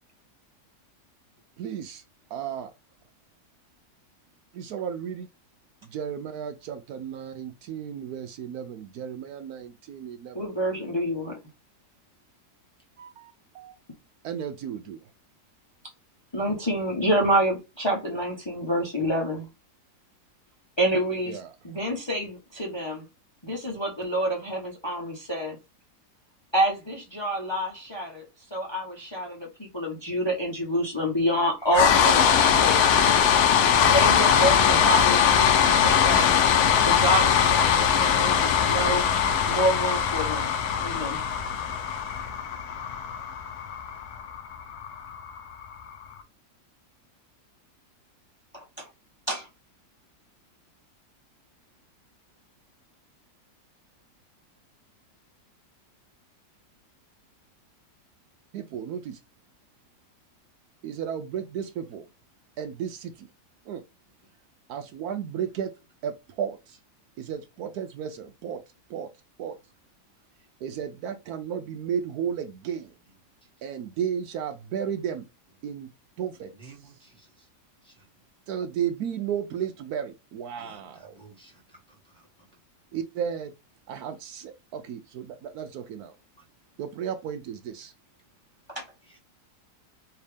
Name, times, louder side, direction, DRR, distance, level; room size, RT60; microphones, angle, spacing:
voice 1, 1.6-2.0 2.3-2.7 4.5-5.3 5.9-10.4 13.0-13.8 14.2-15.0 21.3-21.5 40.0-40.1 58.5-59.2 60.8-62.0 62.6-63.3 63.7-63.8 64.7-65.7 66.0-66.8 67.2-68.6 68.9-69.1 69.4-69.6 70.6-72.9 73.6-75.3 75.6-75.9 76.2-76.7 78.5-81.2 82.9-83.5 83.9-86.1 86.8-87.9, right 8 dB, 75° right, 1.0 m, -34 dB
voice 2, 10.3-11.4 16.3-19.5 20.8-23.0 23.4-25.6 26.5-32.8 33.8-36.3 36.8-39.1 39.5-41.2 48.5-48.9 49.3-49.5 88.7-88.9, equal, 20° left, 0.8 m, -28 dB
sound 1, 31.7-45.8, left 8 dB, 75° left, 1.1 m, -21 dB
voice 3, 76.5-77.5 77.8-78.1 80.6-82.5, right 4 dB, 5° left, 1.4 m, -54 dB
4.5 x 2.9 x 3.3 m
omnidirectional pair, 1.8 m